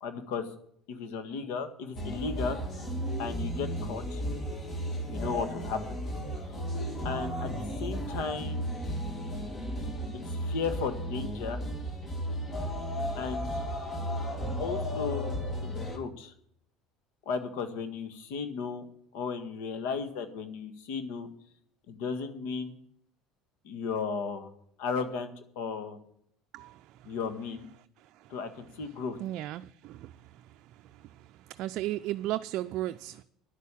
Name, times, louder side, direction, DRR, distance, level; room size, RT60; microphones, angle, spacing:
voice 1, 0.0-0.5 0.9-2.6 3.2-4.2 5.1-6.0 6.4-6.6 7.0-8.7 10.3-11.6 13.1-13.7 14.6-15.3 15.6-16.3 17.2-18.8 19.1-21.3 21.9-22.7 23.6-24.5 24.8-26.0 27.0-27.7 28.3-29.2, left 5 dB, 80° left, 1.7 m, -35 dB
sound 1, 2.0-16.0, equal, 30° left, 2.3 m, -34 dB
voice 2, 29.2-30.1 31.6-33.2, right 15 dB, 60° right, 0.4 m, -34 dB
10.5 x 8.3 x 7.4 m
supercardioid pair, 110°, 0 cm